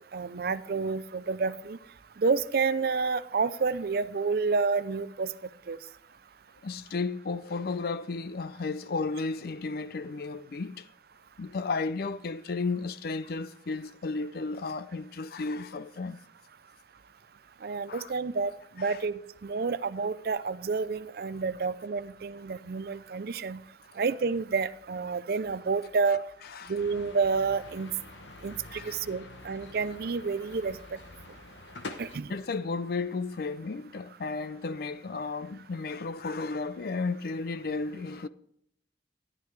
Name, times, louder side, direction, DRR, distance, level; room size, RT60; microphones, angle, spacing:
voice 1, 0.1-1.8 2.2-5.3 5.7-5.8 17.6-18.5 18.8-23.6 24.0-26.2 26.7-27.9 28.4-30.8 32.0-32.3, right 4 dB, 55° right, 0.5 m, -29 dB
voice 2, 6.6-10.9 11.4-16.2 17.9-18.1 18.8-19.0 26.5-26.8 28.7-29.0 32.3-38.3, left 4 dB, 55° left, 0.4 m, -33 dB
sound 1, 26.7-32.2, left 3 dB, 85° left, 1.0 m, -46 dB
12.5 x 11.0 x 3.3 m
head